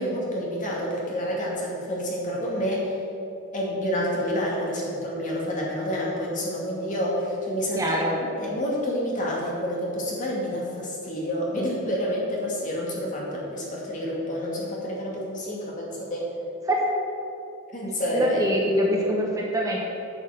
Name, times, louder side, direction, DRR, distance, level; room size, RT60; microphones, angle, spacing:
voice 1, 0.0-3.0 3.5-7.9 8.4-16.3 17.7-18.5, equal, 35° left, -4 dB, 2.3 m, -28 dB
voice 2, 7.7-8.2 16.7-16.8 18.1-19.8, right 1 dB, 15° right, -2 dB, 1.0 m, -24 dB
9.1 x 6.3 x 6.6 m, 2.8 s
head